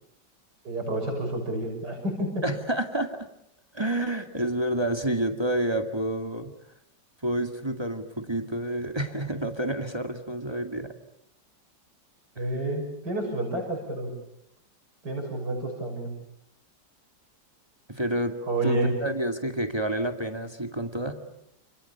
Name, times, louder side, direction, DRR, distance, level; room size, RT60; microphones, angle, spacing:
voice 1, 0.6-2.4 12.4-14.1 15.0-16.1 18.5-18.9, right 1 dB, 70° right, 1 dB, 7.3 m, -29 dB
voice 2, 2.4-3.3 3.7-6.5 7.2-10.9 12.4-12.5 17.9-18.4 18.6-21.2, right 1 dB, 15° right, 6 dB, 2.2 m, -29 dB
29.5 x 28.5 x 7.0 m, 0.75 s
omnidirectional pair, 1.9 m